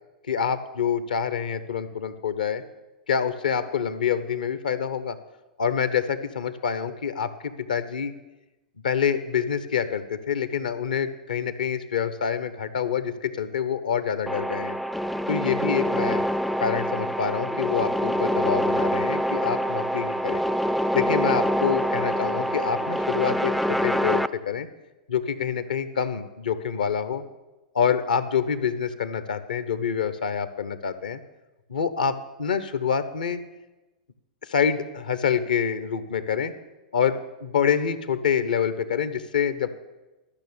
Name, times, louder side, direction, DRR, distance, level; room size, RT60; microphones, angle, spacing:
voice 1, 0.3-2.6 3.1-5.2 5.6-8.1 8.8-14.8 15.3-16.2 16.6-20.4 20.9-24.7 25.1-27.2 27.7-31.2 31.7-33.4 34.4-36.5 36.9-39.7, left 7 dB, 75° left, 12 dB, 0.9 m, -26 dB
sound 1, 14.3-24.3, equal, ahead, 0.3 m, -25 dB
12.0 x 6.2 x 8.7 m, 1.1 s
hypercardioid pair, 105°, 4 cm